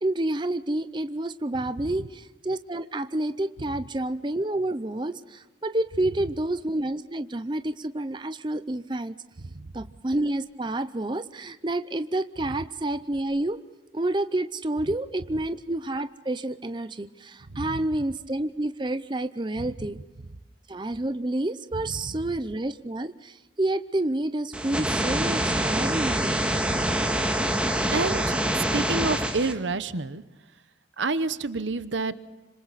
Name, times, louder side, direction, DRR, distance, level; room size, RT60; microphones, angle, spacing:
voice 1, 0.0-9.2 9.7-13.6 13.9-20.0 20.7-26.3, right 1 dB, 25° right, 11 dB, 0.6 m, -29 dB
voice 2, 9.4-9.7 17.5-17.8 19.6-19.7 22.0-22.1 26.5-26.8 27.1-27.6 27.9-30.2 31.0-32.1, right 3 dB, 85° right, 13 dB, 1.0 m, -30 dB
sound 1, 24.5-29.5, right 1 dB, 5° right, 2.0 m, -25 dB
26.0 x 26.0 x 4.1 m, 1.1 s
head